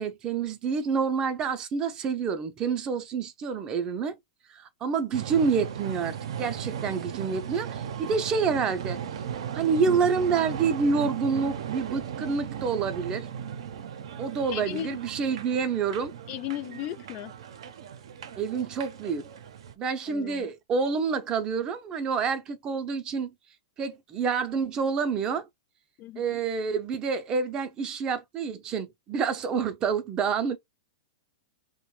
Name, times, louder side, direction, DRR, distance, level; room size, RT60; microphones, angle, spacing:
voice 1, 0.0-4.2 4.5-9.0 9.5-13.3 14.2-16.1 18.4-19.3 19.8-23.3 23.8-25.4 26.2-30.6, right 5 dB, 25° right, 0.5 m, -28 dB
sound 1, 5.1-19.7, right 8 dB, 75° right, 0.5 m, -37 dB
voice 2, 14.5-15.0 16.3-17.3 20.1-20.5 26.0-26.4, left 13 dB, 40° left, 0.4 m, -36 dB
2.5 x 2.1 x 3.1 m
hypercardioid pair, 135°, 3 cm